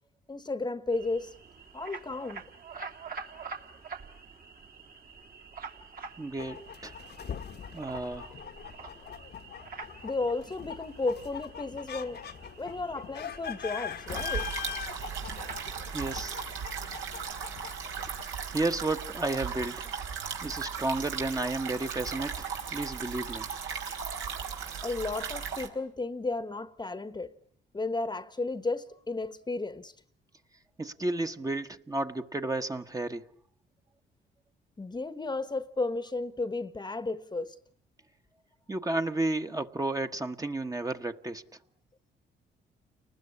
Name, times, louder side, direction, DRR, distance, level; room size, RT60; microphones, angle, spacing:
voice 1, 0.3-1.3 1.7-2.4 10.0-12.2 12.6-14.5 24.8-27.3 27.7-29.9 34.8-37.6, left 3 dB, 20° left, 1.2 m, -33 dB
sound 1, 0.9-15.7, right 5 dB, 50° right, 2.7 m, -47 dB
voice 2, 6.2-6.6 6.8-7.0 7.7-8.3 15.9-16.4 18.5-19.9 20.4-23.5 30.8-33.2 38.7-41.4, right 2 dB, 15° right, 1.3 m, -32 dB
sound 2, 6.4-18.2, left 8 dB, 55° left, 1.3 m, -42 dB
sound 3, 14.1-25.7, right 6 dB, 75° right, 4.5 m, -37 dB
30.0 x 20.0 x 9.8 m
cardioid pair, 90°, 20 cm